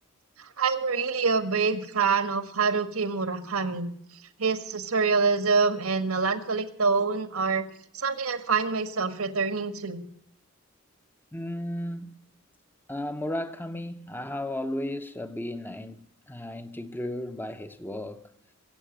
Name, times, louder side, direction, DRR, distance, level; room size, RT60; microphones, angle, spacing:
voice 1, 0.4-3.9 4.4-7.6 7.9-10.0, right 4 dB, 75° right, 1.5 m, -26 dB
voice 2, 11.3-12.1 12.9-18.3, left 1 dB, 10° left, 0.8 m, -34 dB
22.0 x 8.4 x 6.2 m
head